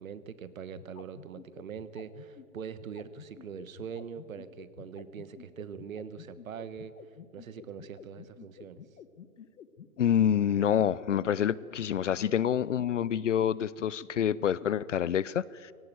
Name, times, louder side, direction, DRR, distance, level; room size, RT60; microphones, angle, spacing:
voice 1, 0.0-6.9 7.3-8.8, right 7 dB, 60° right, 14 dB, 1.3 m, -42 dB
sound 1, 0.7-14.7, left 8 dB, 75° left, 1.5 m, -49 dB
voice 2, 10.0-15.7, left 9 dB, 55° left, 21 dB, 0.5 m, -27 dB
19.0 x 17.5 x 9.4 m, 2.1 s
hypercardioid pair, 180°, 45 cm